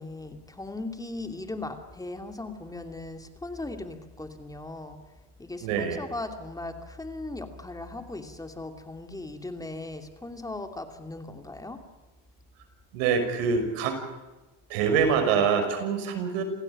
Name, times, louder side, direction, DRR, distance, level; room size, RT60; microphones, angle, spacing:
voice 1, 0.0-5.0 5.4-11.8, left 2 dB, 10° left, 6 dB, 2.8 m, -38 dB
voice 2, 5.6-6.0 12.9-14.0 14.7-16.4, right 6 dB, 80° right, 7 dB, 6.1 m, -25 dB
28.0 x 17.0 x 8.9 m, 1.1 s
supercardioid pair, 115°, 37 cm